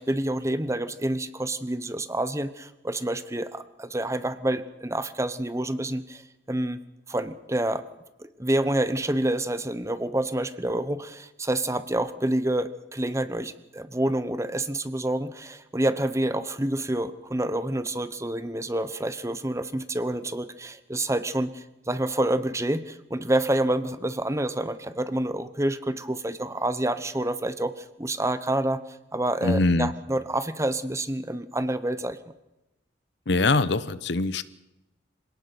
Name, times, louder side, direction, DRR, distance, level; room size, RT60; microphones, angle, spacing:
voice 1, 0.0-6.2 6.5-6.8 7.1-7.8 8.2-32.2, right 1 dB, 15° right, 13 dB, 0.9 m, -28 dB
voice 2, 29.4-29.9 33.3-34.4, left 3 dB, 65° left, 16 dB, 0.9 m, -23 dB
26.5 x 18.0 x 6.0 m, 0.95 s
head